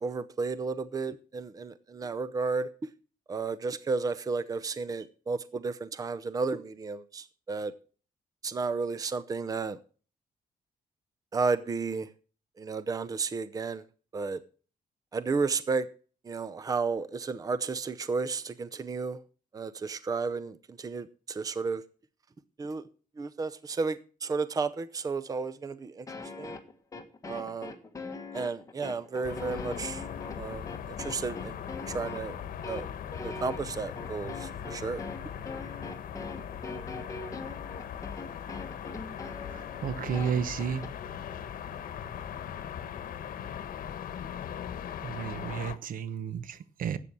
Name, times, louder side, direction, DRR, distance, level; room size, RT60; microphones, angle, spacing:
voice 1, 0.0-2.7 3.3-7.7 8.4-9.8 11.3-12.1 12.6-13.8 14.1-14.4 15.1-15.9 16.2-19.2 19.5-21.8 22.6-22.8 23.2-26.1 26.4-26.5 27.2-27.8 28.3-30.1 30.4-31.6 31.9-32.4 32.7-32.9 33.2-35.0, right 4 dB, 25° right, 0.6 m, -32 dB
sound 1, 26.1-40.9, left 3 dB, 20° left, 1.6 m, -41 dB
sound 2, 29.2-45.8, left 9 dB, 75° left, 1.2 m, -40 dB
voice 2, 39.5-40.9 45.0-47.0, right 8 dB, 70° right, 1.0 m, -32 dB
12.5 x 8.4 x 6.0 m
cardioid pair, 145°, 15 cm